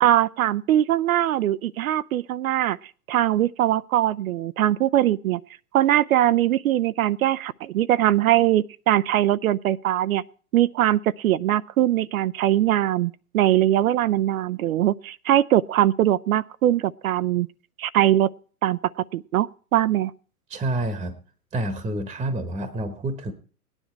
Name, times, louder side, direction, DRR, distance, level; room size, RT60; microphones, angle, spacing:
voice 1, 0.0-2.8 3.1-5.4 5.7-10.2 10.5-17.5 17.8-18.3 18.6-18.8 19.1-20.1, right 12 dB, 65° right, 0.6 m, -21 dB
voice 2, 20.5-21.1 21.5-23.3, right 1 dB, 15° right, 1.1 m, -28 dB
18.0 x 9.9 x 4.5 m
hypercardioid pair, 115°, 46 cm